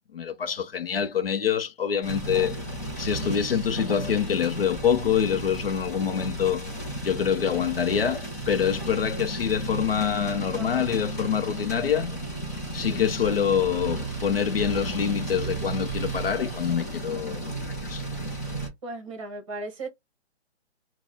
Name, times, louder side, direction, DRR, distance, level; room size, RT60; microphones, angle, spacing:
voice 1, 0.1-2.6 3.0-6.7 7.0-12.2 12.7-18.1, left 8 dB, 55° left, 0.7 m, -26 dB
sound 1, 2.0-18.7, right 2 dB, 15° left, 0.7 m, -33 dB
voice 2, 18.8-19.9, right 2 dB, 30° right, 1.3 m, -37 dB
4.1 x 2.3 x 3.4 m
hypercardioid pair, 170°, 34 cm